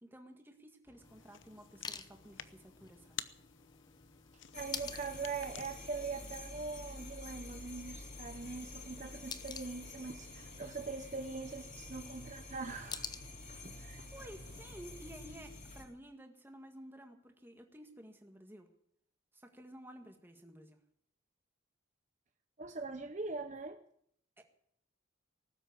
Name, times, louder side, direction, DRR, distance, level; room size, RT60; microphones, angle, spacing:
voice 1, 0.0-3.2 13.8-18.7 19.3-20.8 24.4-24.5, right 1 dB, 10° right, 4 dB, 1.7 m, -53 dB
sound 1, 0.8-15.1, left 5 dB, 20° left, 0.8 m, -51 dB
sound 2, 1.0-6.4, left 10 dB, 65° left, 0.8 m, -51 dB
sound 3, 4.5-15.8, left 2 dB, 40° left, 2.9 m, -49 dB
voice 2, 4.5-13.1 13.6-14.1 22.6-23.8, right 4 dB, 35° right, 8 dB, 0.7 m, -42 dB
18.5 x 8.0 x 9.6 m, 0.72 s
head